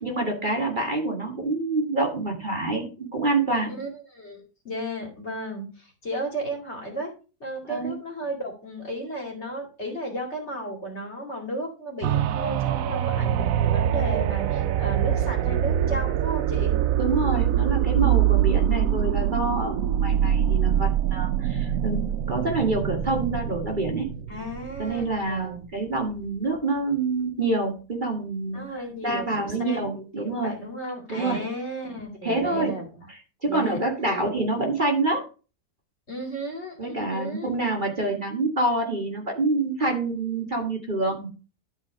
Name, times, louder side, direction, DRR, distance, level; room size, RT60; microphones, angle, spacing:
voice 1, 0.0-3.7 7.6-8.0 17.0-22.0 22.3-24.1 24.8-28.6 29.0-30.5 31.1-31.5 32.2-32.7 33.1-35.2 36.8-41.3, right 2 dB, 30° right, 1 dB, 1.9 m, -27 dB
voice 2, 3.8-7.1 7.4-16.8 24.3-25.7 28.5-32.9 33.4-33.8 36.1-37.5, right 1 dB, 45° left, 1 dB, 2.6 m, -34 dB
sound 1, 12.0-25.7 26.2-26.3, right 10 dB, 65° right, 0.9 m, -24 dB
12.0 x 4.2 x 5.0 m, 0.34 s
omnidirectional pair, 1.7 m